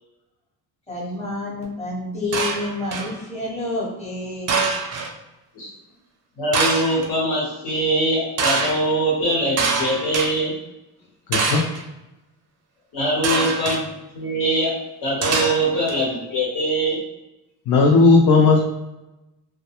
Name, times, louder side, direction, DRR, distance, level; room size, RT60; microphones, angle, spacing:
voice 1, 0.9-4.7, left 2 dB, 15° left, -6 dB, 0.9 m, -29 dB
sound 1, 2.3-3.1 4.5-5.1 6.5-7.1 8.4-8.7 9.6-10.3 11.3-11.8 13.2-13.8 15.2-15.9, right 4 dB, 40° right, 0.5 m, -23 dB
voice 2, 6.4-10.5 12.9-14.8 15.0-17.0, right 1 dB, 75° left, -8 dB, 1.2 m, -22 dB
voice 3, 11.3-11.6 13.3-13.6 17.7-18.6, left 3 dB, 55° left, -1 dB, 0.4 m, -15 dB
2.3 x 2.2 x 2.8 m, 0.97 s
cardioid pair, 125°, 42 cm